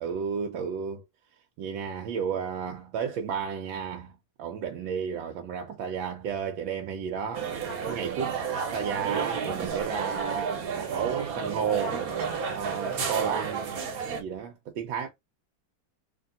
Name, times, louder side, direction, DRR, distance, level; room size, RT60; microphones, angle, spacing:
voice 1, 0.0-1.0 1.6-7.5 7.9-8.3 8.6-12.0 12.5-13.7 14.1-15.1, right 7 dB, 80° right, 1.4 m, -32 dB
sound 1, 7.3-14.2, right 6 dB, 55° right, 1.3 m, -31 dB
3.4 x 2.8 x 3.8 m
omnidirectional pair, 2.1 m